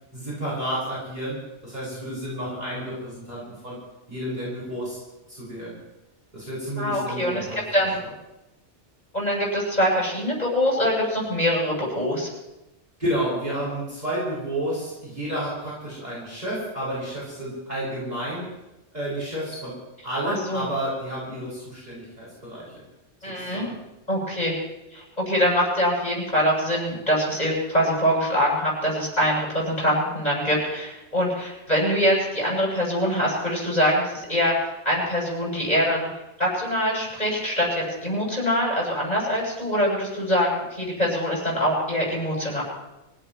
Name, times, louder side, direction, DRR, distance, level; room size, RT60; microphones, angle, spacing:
voice 1, 0.1-3.8 4.1-5.0 5.3-5.7 6.3-7.8 13.0-18.5 18.9-19.8 20.0-22.7 23.2-23.8, right 1 dB, 40° right, -8 dB, 6.2 m, -31 dB
voice 2, 6.8-8.0 9.1-12.3 20.2-20.7 23.2-23.7 24.1-24.5 24.9-36.1 36.4-42.6, equal, 35° left, -3 dB, 8.3 m, -24 dB
26.0 x 17.5 x 3.1 m, 0.96 s
omnidirectional pair, 1.2 m